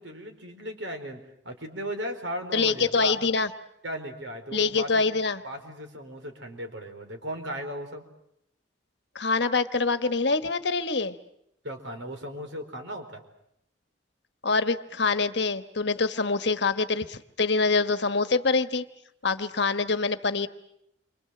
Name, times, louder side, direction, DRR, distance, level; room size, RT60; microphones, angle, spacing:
voice 1, 0.0-3.1 3.8-5.0 5.4-8.0 11.6-13.2, equal, 70° right, 5 dB, 4.8 m, -36 dB
voice 2, 2.5-3.5 4.5-5.4 9.1-11.2 14.4-18.8 19.2-20.5, left 4 dB, 60° left, 10 dB, 1.3 m, -25 dB
29.0 x 25.5 x 7.8 m, 0.78 s
head